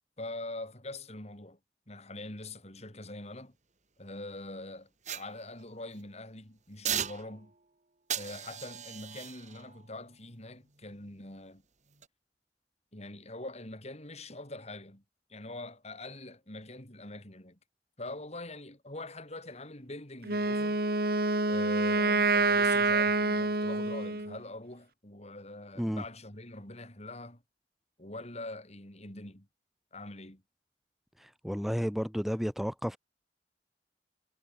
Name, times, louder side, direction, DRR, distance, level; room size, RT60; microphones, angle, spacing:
voice 1, 0.2-1.6 1.9-3.5 4.0-4.9 5.1-7.5 8.1-11.6 12.9-15.0 15.3-17.6 18.0-20.8 21.5-27.4 28.0-29.5 29.9-30.4, left 2 dB, 40° left, 5.3 m, -44 dB
sound 1, 5.0-6.0 6.8-7.7 8.1-11.3 11.9-12.1, right 9 dB, 45° right, 2.9 m, -39 dB
Wind instrument woodwind instrument, 20.2-24.4, right 3 dB, 60° right, 3.6 m, -27 dB
voice 2, 31.2-33.0, equal, ahead, 4.4 m, -32 dB
head